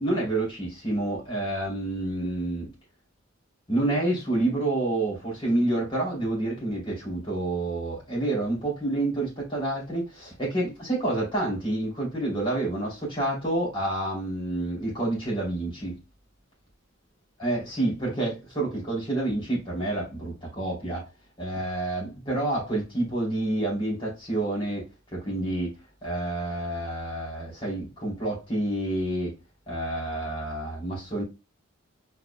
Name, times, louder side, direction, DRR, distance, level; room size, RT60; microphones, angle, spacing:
voice 1, 0.0-2.7 3.7-15.9 17.4-21.0 21.4-24.8 25.1-29.3 29.7-31.2, right 2 dB, 25° left, 2.9 m, -28 dB
4.7 x 4.6 x 2.2 m
head